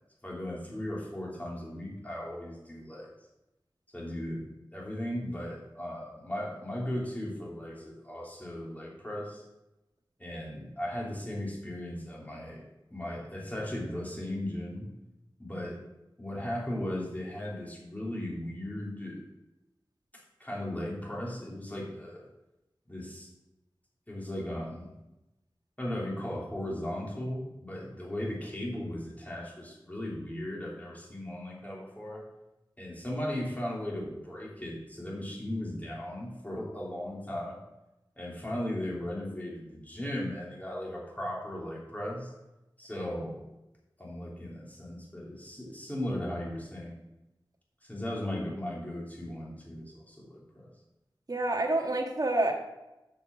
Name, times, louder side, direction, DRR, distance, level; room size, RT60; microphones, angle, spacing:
voice 1, 0.2-3.1 3.9-9.4 10.2-12.6 12.9-14.9 15.4-15.8 16.2-19.2 20.4-22.3 22.9-23.3 24.1-24.9 25.8-32.2 32.8-37.6 38.2-42.3 42.8-43.4 44.0-47.0 47.8-50.7, left 1 dB, 20° left, -4 dB, 3.1 m, -37 dB
voice 2, 51.3-52.5, right 2 dB, 50° right, 2 dB, 1.6 m, -27 dB
6.9 x 6.8 x 6.3 m, 0.96 s
wide cardioid pair, 55°, 8 cm